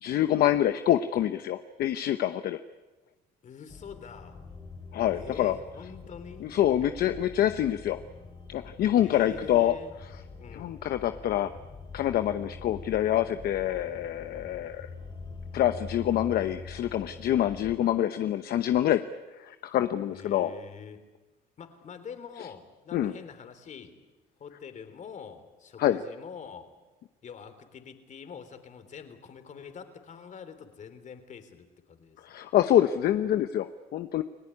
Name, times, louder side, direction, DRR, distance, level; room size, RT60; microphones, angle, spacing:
voice 1, 0.0-2.6 4.9-5.5 6.4-8.0 8.5-9.7 10.5-11.5 11.9-14.9 15.5-19.0 19.4-20.5 22.9-23.1 25.8-26.0 32.2-34.2, left 11 dB, 65° left, 9 dB, 1.0 m, -26 dB
voice 2, 3.4-4.4 5.1-6.5 6.8-6.9 9.0-9.9 10.4-10.9 20.1-21.1 21.6-24.0 24.4-26.7 27.2-32.4, left 7 dB, 45° left, 9 dB, 3.5 m, -45 dB
sound 1, 3.7-17.8, left 4 dB, 30° left, 3.8 m, -45 dB
29.5 x 18.0 x 9.9 m, 1.2 s
cardioid pair, 110°, 17 cm